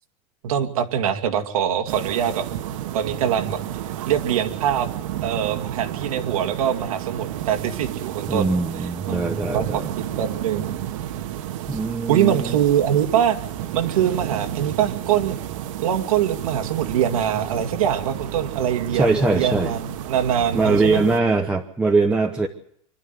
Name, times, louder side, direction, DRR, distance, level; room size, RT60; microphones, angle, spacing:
voice 1, 0.4-2.5 2.9-3.6 4.1-4.9 5.2-8.5 8.8-10.7 12.1-13.4 13.7-15.4 15.8-21.0, right 9 dB, 90° right, 6 dB, 2.4 m, -23 dB
sound 1, 1.9-21.2, right 11 dB, 70° right, 1.7 m, -31 dB
voice 2, 8.3-9.9 11.7-12.6 18.9-19.7 20.5-22.5, right 3 dB, 5° right, 1 dB, 1.0 m, -21 dB
26.0 x 12.0 x 9.3 m, 0.69 s
supercardioid pair, 155°, 18 cm